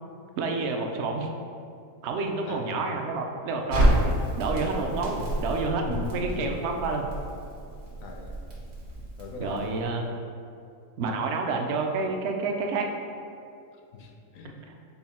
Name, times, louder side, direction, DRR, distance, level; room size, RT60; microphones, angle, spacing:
voice 1, 0.4-1.3 2.0-3.9 4.4-5.9 6.1-7.1 9.4-10.3 11.0-12.9, right 3 dB, 65° right, 2 dB, 0.7 m, -29 dB
Crackle, 3.7-9.8, right 1 dB, 85° right, 1.6 m, -29 dB
voice 2, 8.0-8.4 9.2-9.8 13.7-14.6, left 3 dB, 75° left, 1 dB, 1.0 m, -42 dB
5.6 x 2.3 x 4.1 m, 2.5 s
omnidirectional pair, 1.5 m